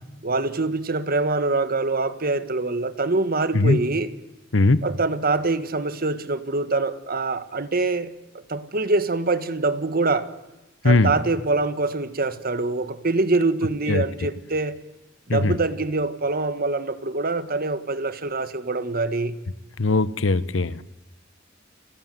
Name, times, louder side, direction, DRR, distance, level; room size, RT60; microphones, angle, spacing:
voice 1, 0.2-4.1 4.8-8.1 8.5-10.3 10.8-14.8 15.3-19.4, right 3 dB, 50° right, 12 dB, 1.6 m, -24 dB
voice 2, 4.5-4.8 10.8-11.1 13.9-14.0 15.3-15.6 19.8-20.8, left 2 dB, 70° left, 16 dB, 1.1 m, -20 dB
29.5 x 17.5 x 9.3 m, 0.94 s
head